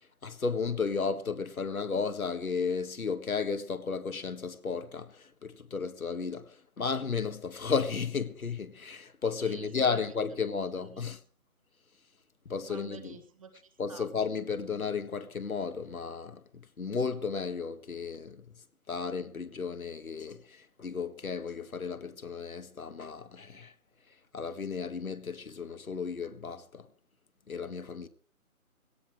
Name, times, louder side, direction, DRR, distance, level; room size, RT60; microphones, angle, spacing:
voice 1, 0.2-11.2 12.4-13.1 13.8-18.4 18.9-23.7 24.3-26.8 27.5-28.1, left 5 dB, 70° left, 1.8 m, -34 dB
voice 2, 9.4-10.2 10.8-11.1 12.6-14.1, right 6 dB, 25° right, 1.5 m, -49 dB
17.5 x 14.0 x 4.8 m
figure-of-eight pair, 160°, 43 cm